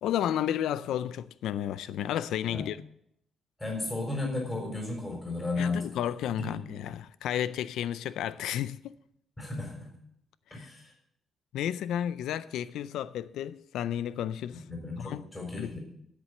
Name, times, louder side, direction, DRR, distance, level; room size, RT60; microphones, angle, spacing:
voice 1, 0.0-2.8 5.6-8.9 10.5-10.7 11.5-14.6 15.0-15.3 15.6-15.7, left 10 dB, 90° left, 0.4 m, -32 dB
voice 2, 3.6-5.9 6.4-6.6 9.4-9.9 10.5-10.9 14.5-15.8, left 3 dB, 15° left, 4.0 m, -34 dB
9.7 x 8.3 x 7.6 m
cardioid pair, 115°, 0 cm